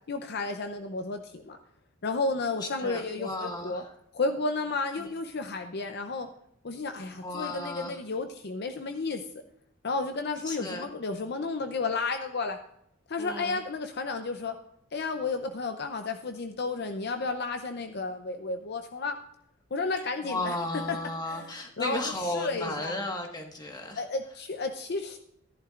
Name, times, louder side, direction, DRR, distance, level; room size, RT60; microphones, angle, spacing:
voice 1, 0.1-1.6 2.0-3.8 4.1-6.3 6.6-9.2 9.8-12.6 13.1-14.5 14.9-19.2 19.7-20.6 20.9-21.0 21.3-21.5 21.8-23.0 24.0-25.2, left 3 dB, 55° left, 7 dB, 0.6 m, -32 dB
voice 2, 2.6-3.9 5.0-5.1 7.2-8.0 10.4-10.9 13.2-13.6 20.2-24.1, left 2 dB, 20° left, 2 dB, 1.5 m, -34 dB
14.0 x 11.0 x 2.5 m, 0.75 s
head